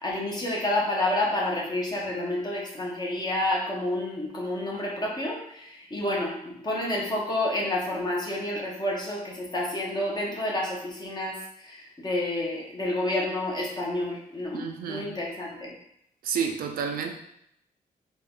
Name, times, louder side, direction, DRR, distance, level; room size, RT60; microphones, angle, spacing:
voice 1, 0.0-11.3 11.6-15.7, left 1 dB, 30° left, -3 dB, 1.2 m, -29 dB
voice 2, 14.5-15.1 16.2-17.1, right 7 dB, 80° right, 4 dB, 0.5 m, -30 dB
3.7 x 2.4 x 3.7 m, 0.74 s
cardioid pair, 85°, 15 cm